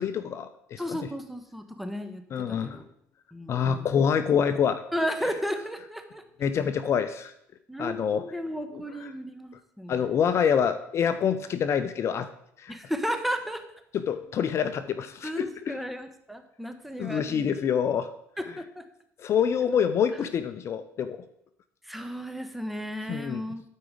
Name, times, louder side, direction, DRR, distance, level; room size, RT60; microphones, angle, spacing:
voice 1, 0.0-1.0 2.3-2.8 3.5-4.8 6.4-7.3 7.8-8.2 9.9-12.3 12.6-12.8 13.9-15.8 17.0-18.1 19.2-21.2 23.1-23.4, left 7 dB, 50° left, 12 dB, 0.6 m, -26 dB
voice 2, 0.8-2.8 3.3-3.9 4.9-6.2 7.7-10.1 12.7-13.6 15.2-17.5 18.4-18.8 21.8-23.6, equal, ahead, 6 dB, 1.2 m, -34 dB
12.0 x 4.9 x 5.0 m, 0.75 s
supercardioid pair, 85°, 6 cm